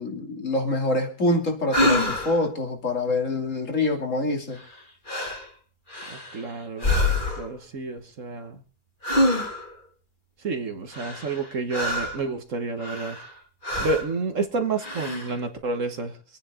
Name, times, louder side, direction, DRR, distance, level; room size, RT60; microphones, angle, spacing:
voice 1, 0.0-4.6, left 2 dB, 55° left, 3.0 m, -25 dB
sound 1, 1.7-2.5 4.5-4.8 5.1-5.5 5.9-6.4 6.8-7.6 9.0-9.8 10.9-12.3 12.8-13.3 13.6-14.1 14.8-15.4, left 1 dB, 30° left, 2.9 m, -26 dB
voice 2, 6.1-6.9 7.4-8.6 10.4-13.2 13.8-16.2, right 3 dB, 55° right, 1.7 m, -29 dB
25.5 x 9.8 x 3.7 m
omnidirectional pair, 1.6 m